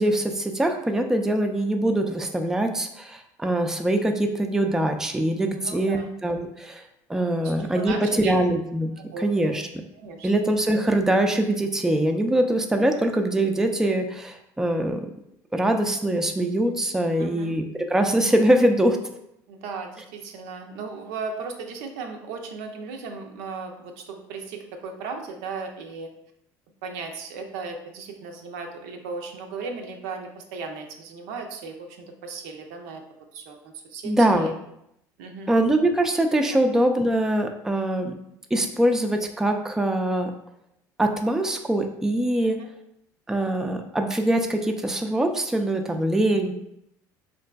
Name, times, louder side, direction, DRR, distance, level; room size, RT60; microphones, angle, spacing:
voice 1, 0.0-6.8 7.1-8.9 9.2-9.6 10.2-15.1 15.5-19.0 34.0-34.5 35.5-38.1 38.5-40.3 41.0-42.6 43.3-46.5, right 1 dB, 5° right, 4 dB, 0.3 m, -23 dB
voice 2, 5.5-6.1 7.4-8.3 9.0-9.6 9.9-10.3 17.2-17.5 19.5-26.1 26.8-33.0 33.3-34.5 35.2-35.5 36.5-36.6 42.6-42.7, right 4 dB, 80° right, 4 dB, 0.5 m, -36 dB
3.7 x 2.4 x 2.2 m, 0.79 s
supercardioid pair, 85°, 9 cm